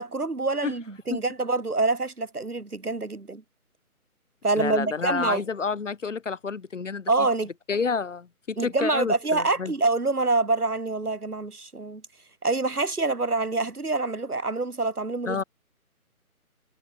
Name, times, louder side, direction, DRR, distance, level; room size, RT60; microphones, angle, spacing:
voice 1, 0.0-3.4 4.4-5.4 7.1-7.5 8.6-12.0 12.4-15.4, right 3 dB, 85° right, 3.3 m, -26 dB
voice 2, 4.6-7.1 7.7-9.7 15.3-15.4, left 5 dB, 55° left, 4.1 m, -29 dB
figure-of-eight pair, 155°, 44 cm